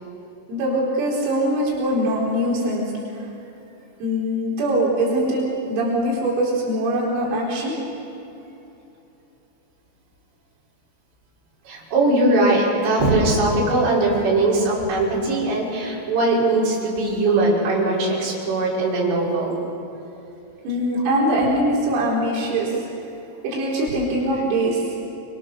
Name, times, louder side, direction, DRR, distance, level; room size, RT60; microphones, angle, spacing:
voice 1, 0.5-2.9 4.0-7.7 20.7-22.7 23.4-24.8, right 1 dB, 90° right, -5 dB, 6.9 m, -22 dB
voice 2, 11.7-19.6, right 2 dB, 60° right, -6 dB, 7.9 m, -20 dB
28.0 x 24.5 x 6.7 m, 2.9 s
omnidirectional pair, 5.9 m